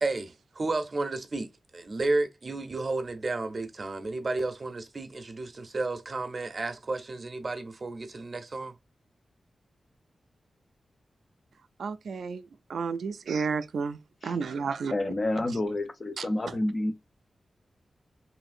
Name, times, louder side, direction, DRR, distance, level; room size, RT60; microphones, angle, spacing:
voice 1, 0.0-8.7, right 2 dB, 35° right, 0.5 m, -32 dB
voice 2, 11.8-14.9 16.2-16.3, right 5 dB, 80° right, 0.3 m, -32 dB
voice 3, 14.9-16.9, left 1 dB, 30° left, 0.5 m, -29 dB
3.1 x 2.7 x 2.4 m
wide cardioid pair, 175°, 0 cm